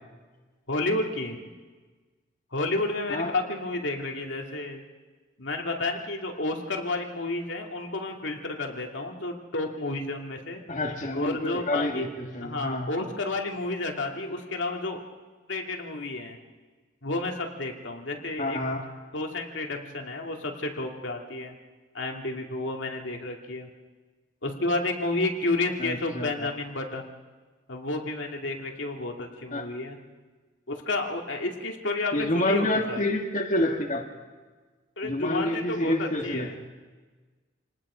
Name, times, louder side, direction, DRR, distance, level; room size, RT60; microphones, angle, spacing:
voice 1, 0.7-1.4 2.5-4.8 5.4-10.6 11.1-12.0 12.4-15.0 15.5-16.4 17.0-18.6 19.1-21.6 21.9-23.7 24.4-27.1 27.7-30.0 30.7-33.0 35.0-36.6, left 2 dB, 75° left, 2 dB, 2.4 m, -31 dB
voice 2, 10.7-12.9 18.4-18.8 25.8-26.5 29.5-29.6 32.1-34.0 35.0-36.6, left 1 dB, 40° left, 1 dB, 1.8 m, -28 dB
28.0 x 19.5 x 5.0 m, 1.4 s
head